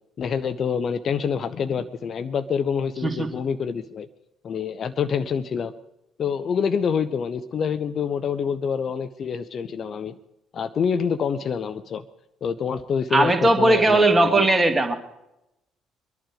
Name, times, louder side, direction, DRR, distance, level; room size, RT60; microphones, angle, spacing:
voice 1, 0.2-4.1 4.4-5.7 6.2-10.2 10.5-12.0 12.4-14.5, left 6 dB, 45° left, 12 dB, 0.7 m, -26 dB
voice 2, 13.1-15.0, right 2 dB, 15° right, 5 dB, 2.3 m, -18 dB
23.0 x 11.5 x 5.0 m, 0.88 s
figure-of-eight pair, 50°, 0 cm